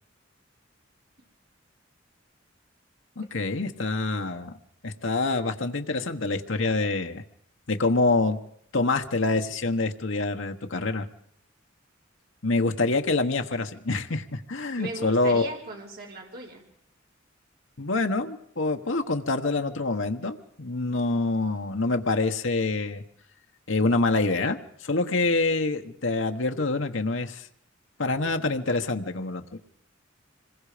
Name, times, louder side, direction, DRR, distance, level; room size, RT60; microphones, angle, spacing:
voice 1, 3.2-4.6 4.8-7.2 7.7-8.4 8.7-11.1 12.4-15.5 17.8-23.0 23.7-27.5 28.0-29.6, left 3 dB, 70° left, 5 dB, 1.3 m, -26 dB
voice 2, 14.8-16.6, right 2 dB, 50° right, -1 dB, 4.8 m, -38 dB
26.0 x 21.5 x 5.1 m, 0.71 s
head